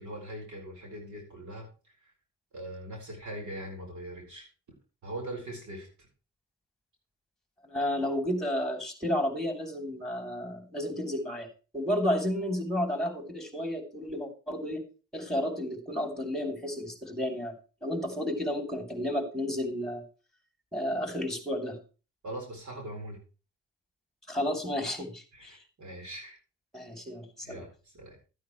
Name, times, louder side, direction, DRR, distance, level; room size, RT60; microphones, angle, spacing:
voice 1, 0.0-1.7 2.0-2.1 2.5-4.5 5.0-5.9 22.2-23.2 25.3-26.4 27.4-28.2, right 1 dB, 60° right, 0 dB, 4.2 m, -41 dB
voice 2, 7.6-11.5 11.7-14.8 15.1-17.5 17.8-20.0 20.7-21.8 24.3-25.6 26.7-27.6, left 1 dB, ahead, 4 dB, 3.2 m, -32 dB
13.0 x 9.3 x 3.1 m, 0.34 s
supercardioid pair, 55°, 33 cm